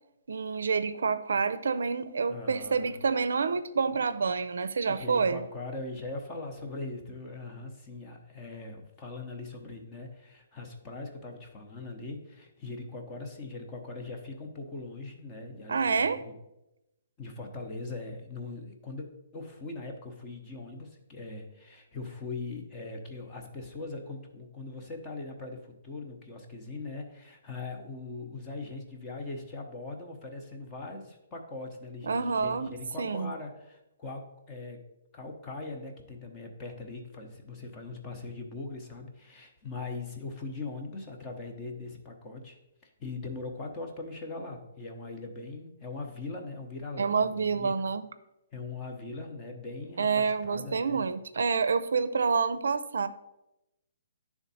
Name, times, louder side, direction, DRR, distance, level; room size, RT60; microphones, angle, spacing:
voice 1, 0.3-5.4 15.7-16.2 32.0-33.3 47.0-48.1 50.0-53.1, right 5 dB, 80° right, 12 dB, 0.5 m, -28 dB
voice 2, 2.3-3.0 4.8-16.3 17.2-19.1 19.3-34.8 35.1-47.8 48.5-51.0, left 3 dB, 15° left, 2 dB, 0.7 m, -41 dB
10.0 x 3.5 x 4.1 m, 0.91 s
hypercardioid pair, 175°, 0 cm